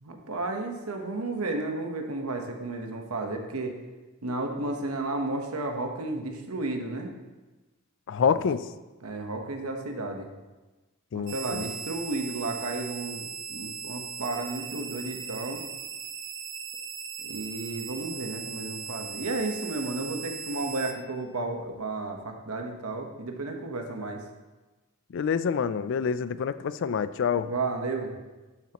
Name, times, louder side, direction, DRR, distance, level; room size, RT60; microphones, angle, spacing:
voice 1, 0.0-3.7 4.2-7.1 8.3-8.4 9.0-10.3 11.1-15.6 17.2-24.2 27.3-28.1, right 2 dB, 90° right, 4 dB, 1.1 m, -33 dB
voice 2, 8.1-8.7 11.1-11.7 25.1-27.5, left 6 dB, 60° left, 14 dB, 0.4 m, -27 dB
sound 1, 11.3-20.9, right 6 dB, 55° right, 0.8 m, -38 dB
11.5 x 7.1 x 3.0 m, 1.2 s
head